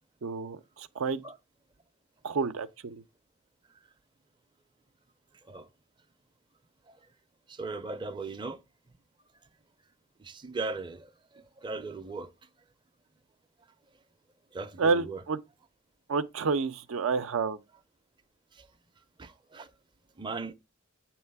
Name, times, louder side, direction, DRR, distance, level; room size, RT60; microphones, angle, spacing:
voice 1, 0.2-1.2 2.2-3.0 14.8-15.4 16.1-17.6, right 4 dB, 85° right, 0.5 m, -29 dB
voice 2, 7.5-8.6 10.2-12.3 14.5-15.2 18.6-18.7 19.2-19.7 20.2-20.5, right 3 dB, 25° right, 0.5 m, -38 dB
8.0 x 3.0 x 4.5 m
head